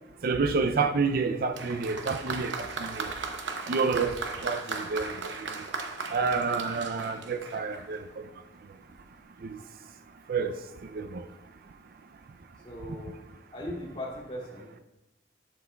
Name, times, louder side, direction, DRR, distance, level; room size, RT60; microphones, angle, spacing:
voice 1, 0.2-3.1 3.7-4.2 4.4-5.5 6.1-8.2 9.5-9.6 10.3-10.5 10.9-11.2, right 4 dB, 55° right, 0.4 m, -29 dB
Applause, 1.5-8.0 8.9-9.0, right 4 dB, 85° right, 0.8 m, -37 dB
voice 2, 12.6-13.2 13.5-14.8, left 1 dB, 30° left, 2.6 m, -38 dB
11.5 x 7.5 x 2.3 m
head